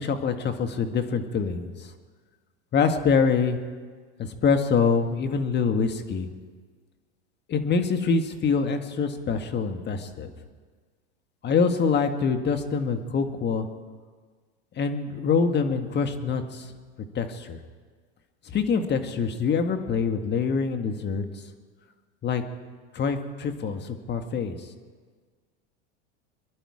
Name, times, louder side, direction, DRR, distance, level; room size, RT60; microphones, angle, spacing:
voice 1, 0.0-1.9 2.7-3.6 4.2-6.3 7.5-10.3 11.4-13.7 14.7-16.7 17.1-17.6 18.4-21.5 22.2-22.4 22.9-24.7, left 5 dB, 30° left, 7 dB, 1.6 m, -25 dB
24.0 x 11.5 x 4.9 m, 1.5 s
hypercardioid pair, 105°, 35 cm